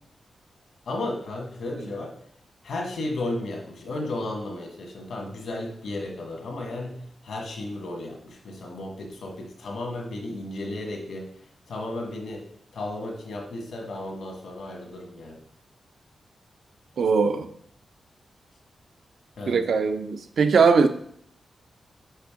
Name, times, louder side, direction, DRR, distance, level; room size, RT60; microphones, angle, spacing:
voice 1, 0.8-2.1 2.6-11.3 11.7-12.4 12.7-15.4 19.4-19.6, left 2 dB, 85° left, 0 dB, 1.6 m, -34 dB
voice 2, 17.0-17.5 19.5-20.9, right 5 dB, 70° right, 8 dB, 0.6 m, -20 dB
6.5 x 5.0 x 3.7 m, 0.65 s
cardioid pair, 90°, 0 cm